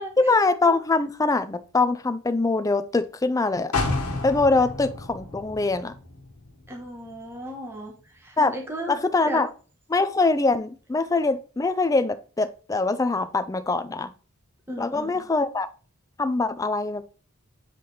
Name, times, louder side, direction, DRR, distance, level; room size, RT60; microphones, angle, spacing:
voice 1, 0.2-3.7 4.2-5.9 8.4-8.5 8.9-9.5 9.9-14.1 14.8-15.7 16.2-17.0, left 3 dB, 15° left, 0.4 m, -23 dB
sound 1, 3.7-7.5 7.8-7.9, left 3 dB, 90° left, 1.4 m, -31 dB
voice 2, 6.7-9.0 9.2-9.4 14.7-15.2, right 1 dB, 10° right, 1.1 m, -36 dB
7.5 x 3.3 x 4.1 m
head